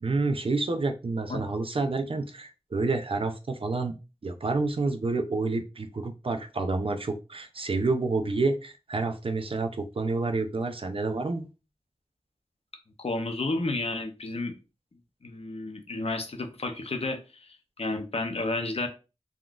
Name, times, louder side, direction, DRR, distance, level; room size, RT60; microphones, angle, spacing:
voice 1, 0.0-3.9 4.2-11.5, right 3 dB, 55° right, 6 dB, 0.4 m, -29 dB
voice 2, 13.0-14.5 15.2-17.2 17.5-18.9, left 2 dB, 60° left, 5 dB, 0.6 m, -31 dB
3.6 x 2.3 x 2.4 m, 0.30 s
wide cardioid pair, 60°, 11 cm